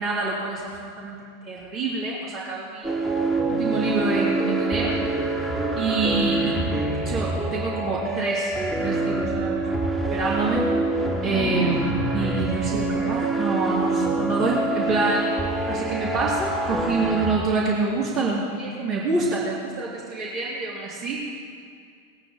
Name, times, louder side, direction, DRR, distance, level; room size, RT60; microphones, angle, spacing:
voice 1, 0.0-2.9 3.5-5.0 5.8-6.6 7.0-9.8 10.1-10.6 11.2-15.3 15.7-21.2, right 3 dB, 35° right, -8 dB, 3.0 m, -27 dB
sound 1, 2.8-17.4, right 2 dB, 10° right, 3.2 m, -26 dB
21.0 x 8.9 x 4.3 m, 2.2 s
figure-of-eight pair, 90°, 0 cm